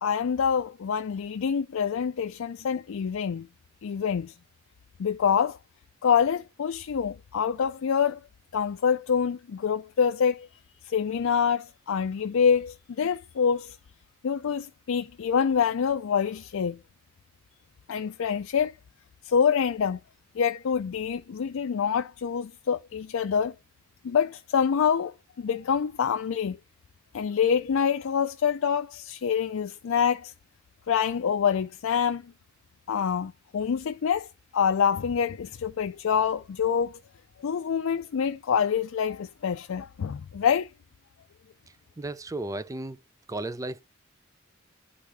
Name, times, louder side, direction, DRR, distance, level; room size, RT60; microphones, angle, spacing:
voice 1, 0.0-3.5 3.8-4.3 5.0-5.6 6.0-8.2 8.5-10.5 10.8-13.8 14.2-16.8 17.9-18.7 19.2-20.0 20.3-23.6 24.0-26.6 27.1-30.3 30.9-32.3 32.9-37.0 37.4-40.7, left 7 dB, 75° left, 0.4 m, -26 dB
voice 2, 42.0-43.0 43.3-43.8, right 2 dB, 15° right, 0.4 m, -34 dB
10.0 x 3.7 x 4.6 m
head